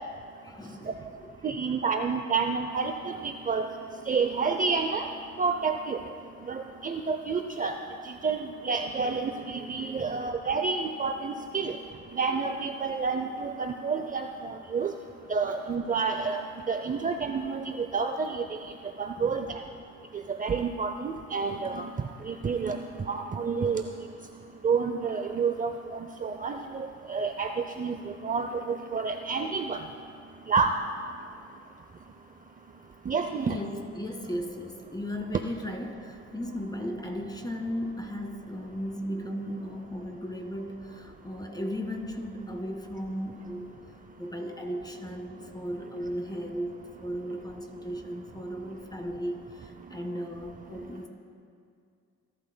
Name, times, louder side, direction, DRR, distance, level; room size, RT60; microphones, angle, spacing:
voice 1, 0.4-1.3 10.0-10.2 19.2-19.3 33.5-43.7 44.2-46.7 47.0-51.1, equal, 15° left, 4 dB, 1.7 m, -36 dB
voice 2, 1.4-3.7 4.1-5.1 5.4-6.0 6.5-7.7 8.2-11.8 12.1-14.9 15.3-16.4 16.7-18.4 19.0-19.6 20.4-21.9 22.3-22.8 23.1-23.8 24.6-29.8 30.5-30.7 33.1-33.6, right 5 dB, 25° right, 6 dB, 0.5 m, -29 dB
27.5 x 12.0 x 2.2 m, 2.3 s
cardioid pair, 90°, 30 cm